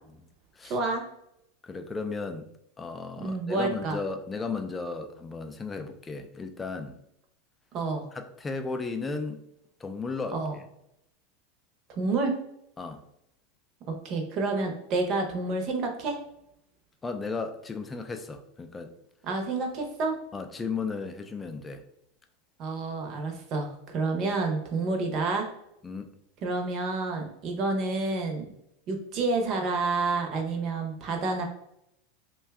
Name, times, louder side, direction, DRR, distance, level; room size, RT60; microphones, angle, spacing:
voice 1, 0.6-1.1 3.2-4.0 7.7-8.1 10.3-10.6 12.0-12.4 13.9-16.2 19.2-20.2 22.6-25.5 26.4-28.5 28.9-31.4, right 3 dB, 45° right, 0.7 m, -29 dB
voice 2, 1.6-2.5 2.8-7.0 8.1-9.4 9.8-10.6 12.8-13.0 17.0-18.9 20.3-21.8 25.8-26.1, left 4 dB, 15° left, 0.3 m, -35 dB
2.6 x 2.3 x 3.4 m
supercardioid pair, 130°, 0 cm